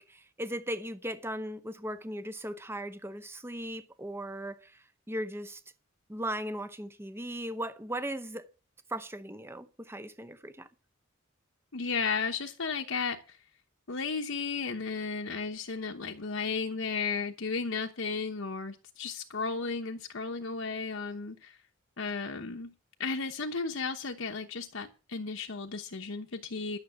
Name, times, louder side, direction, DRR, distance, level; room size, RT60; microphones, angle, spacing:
voice 1, 0.0-5.6 6.1-8.5 8.9-10.7, right 1 dB, 10° right, 0.8 m, -38 dB
voice 2, 11.7-13.4 13.9-21.6 22.0-22.7 23.0-26.8, left 4 dB, 70° left, 1.0 m, -34 dB
12.0 x 6.8 x 8.0 m
head